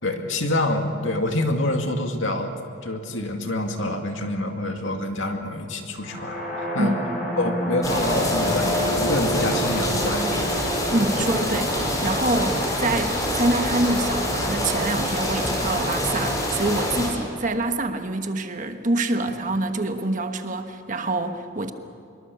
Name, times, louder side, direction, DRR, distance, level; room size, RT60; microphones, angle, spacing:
voice 1, 0.0-2.5 2.8-6.4 6.7-6.9 7.4-10.6 11.2-11.3 12.4-12.5, left 1 dB, 70° left, 4 dB, 2.3 m, -26 dB
sound 1, 6.0-13.9, equal, 40° left, 6.6 m, -30 dB
sound 2, 7.8-17.1, left 1 dB, 15° left, 4.4 m, -25 dB
voice 2, 10.9-21.7, right 2 dB, 40° right, 6 dB, 1.3 m, -26 dB
25.0 x 23.0 x 7.1 m, 2.3 s
head